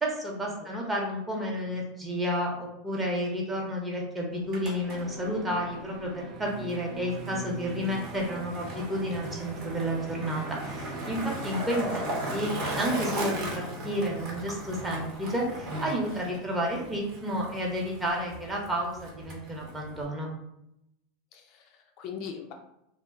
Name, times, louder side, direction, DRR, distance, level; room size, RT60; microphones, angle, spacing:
voice 1, 0.0-12.5 12.8-20.3, equal, 15° right, -1 dB, 0.7 m, -31 dB
Skateboard, 4.3-20.0, right 1 dB, 55° right, 0.8 m, -37 dB
sound 1, 4.9-11.3, right 6 dB, 30° right, 0.3 m, -44 dB
voice 2, 21.3-22.5, left 7 dB, 50° left, 3 dB, 0.4 m, -41 dB
2.4 x 2.0 x 3.5 m, 0.81 s
supercardioid pair, 135°, 0 cm